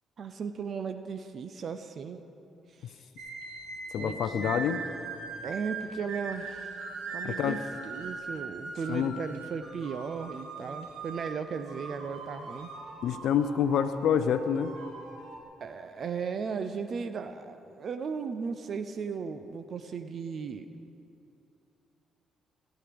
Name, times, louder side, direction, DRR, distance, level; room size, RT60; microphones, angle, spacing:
voice 1, 0.2-2.2 2.8-3.1 4.0-4.5 5.4-6.7 7.1-12.7 15.6-20.7, right 5 dB, 55° right, 9 dB, 0.5 m, -36 dB
sound 1, 3.2-15.4, right 4 dB, 90° right, 1.5 m, -41 dB
voice 2, 3.9-4.8 7.2-7.6 8.9-9.1 13.0-14.7, left 8 dB, 75° left, 10 dB, 0.4 m, -27 dB
17.5 x 9.2 x 3.4 m, 2.7 s
cardioid pair, 90°, 0 cm